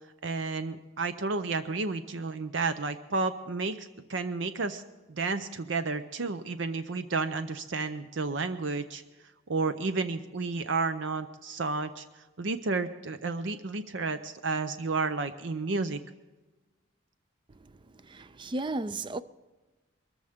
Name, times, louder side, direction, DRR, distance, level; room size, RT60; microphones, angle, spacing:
voice 1, 0.2-4.8 5.1-9.0 9.5-12.0 12.4-16.0, right 3 dB, 65° right, 0.6 m, -31 dB
voice 2, 18.1-19.2, right 2 dB, 25° right, 0.4 m, -33 dB
22.0 x 14.0 x 3.6 m
head